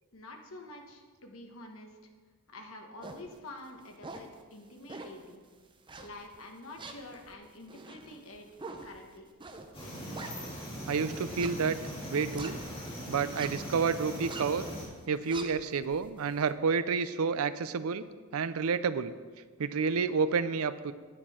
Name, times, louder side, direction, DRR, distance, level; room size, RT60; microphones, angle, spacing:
voice 1, 0.1-2.0 2.5-5.4 6.0-8.5 8.8-9.3, left 2 dB, 70° left, 3 dB, 1.3 m, -47 dB
sound 1, 3.0-3.3 3.8-4.3 4.9-5.2 5.9-6.4 6.8-10.8 11.2-12.9 13.2-13.7 14.1-14.6 15.0-16.4, right 3 dB, 25° right, 0.7 m, -45 dB
sound 2, 9.7-14.9, equal, 25° left, 2.4 m, -40 dB
voice 2, 10.9-11.8 12.1-12.6 13.1-14.7 15.1-18.0 18.3-19.1 19.6-20.9, right 5 dB, 85° right, 14 dB, 0.5 m, -29 dB
9.8 x 8.6 x 4.3 m, 1.5 s
head